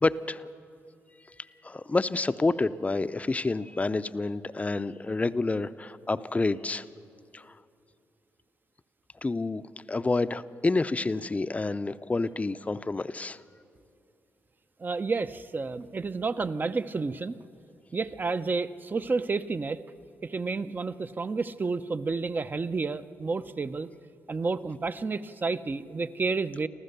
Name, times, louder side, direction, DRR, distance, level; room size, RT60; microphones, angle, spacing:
voice 1, 0.0-0.4 1.6-6.8 7.3-7.4 9.2-9.6 9.9-13.4, left 3 dB, 25° left, 12 dB, 0.6 m, -28 dB
voice 2, 14.8-17.4 17.9-19.8 20.2-23.9 24.3-26.7, right 4 dB, 35° right, 12 dB, 0.7 m, -30 dB
26.0 x 14.5 x 6.8 m, 2.7 s
cardioid pair, 70°, 6 cm